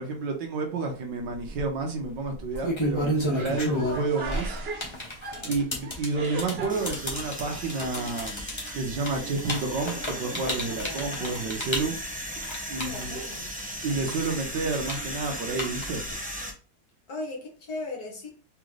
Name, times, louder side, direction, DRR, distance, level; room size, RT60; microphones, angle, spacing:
voice 1, 0.0-4.6 5.4-8.4 8.7-12.0 12.7-13.2 13.8-16.0, right 3 dB, 75° right, 1.7 m, -30 dB
sound 1, 1.3-1.6 2.4-13.7 14.0-16.1, equal, 20° left, 1.0 m, -31 dB
sound 2, 3.2-12.2, right 3 dB, 55° right, 0.7 m, -41 dB
voice 2, 3.6-3.9 5.3-5.6 10.6-11.4 12.7-13.5 17.1-18.3, left 2 dB, 60° left, 1.9 m, -39 dB
sound 3, 6.7-16.5, equal, 10° right, 0.5 m, -37 dB
4.1 x 3.8 x 3.2 m
omnidirectional pair, 1.9 m